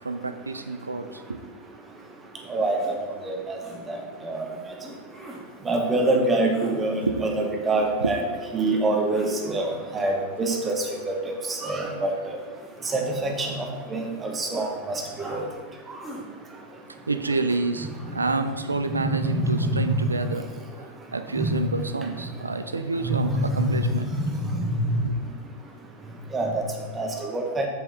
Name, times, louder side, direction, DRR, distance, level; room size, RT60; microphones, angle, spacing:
voice 1, 0.0-1.4 7.0-7.2 8.0-8.2 17.1-20.5 21.1-24.1 25.0-25.1, right 3 dB, 80° right, 10 dB, 0.5 m, -28 dB
sound 1, 2.8-2.9 3.6-3.8 4.8-5.4 6.0-6.2 6.5-6.8 8.9-9.4 12.4-13.7 14.1-14.2 14.5-14.7 15.2-15.5 16.0-16.2, right 1 dB, 5° right, 2.4 m, -42 dB
voice 2, 3.2-3.6 3.9-4.4 5.6-8.2 8.5-10.1 10.4-10.7 11.5-12.1 12.9-13.7 13.9-14.7 15.2-15.4 18.9-20.0 21.4-21.6 23.1-23.7 24.6-24.8 26.3-26.6 26.9-27.7, right 2 dB, 20° right, 2 dB, 1.5 m, -25 dB
8.0 x 7.3 x 4.3 m, 1.4 s
figure-of-eight pair, 90°, 0 cm